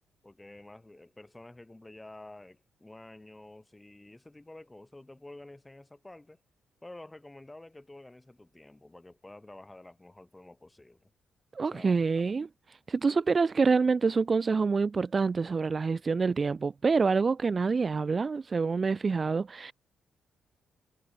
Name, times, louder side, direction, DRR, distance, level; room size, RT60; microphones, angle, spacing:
voice 1, 0.2-6.4 6.8-11.1 11.7-12.2, left 2 dB, 15° left, 5.7 m, -50 dB
voice 2, 11.5-12.5 12.9-19.7, right 4 dB, 35° right, 1.1 m, -26 dB
cardioid pair, 85°, 0 cm